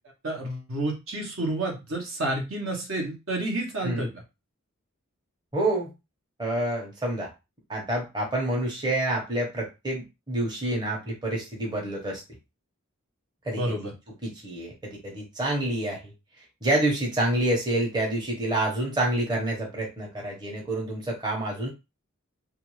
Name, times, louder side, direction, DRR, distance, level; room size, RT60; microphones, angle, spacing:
voice 1, 0.2-4.1 13.6-13.9, right 1 dB, 65° right, 1 dB, 0.9 m, -30 dB
voice 2, 5.5-5.9 6.4-7.3 7.7-12.2 13.4-13.9 14.2-16.1 16.6-21.7, right 1 dB, 20° right, -2 dB, 0.9 m, -28 dB
2.5 x 2.4 x 3.1 m, 0.25 s
head